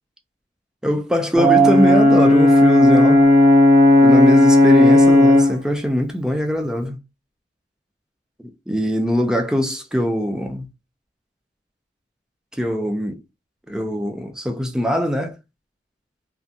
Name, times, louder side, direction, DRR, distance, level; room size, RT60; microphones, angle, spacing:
voice 1, 0.8-3.2 4.0-7.0 8.4-10.7 12.5-13.2 13.7-15.4, equal, 5° right, 0.3 m, -22 dB
Brass instrument, 1.4-5.6, left 1 dB, 20° left, 0.8 m, -12 dB
2.5 x 2.1 x 2.5 m
head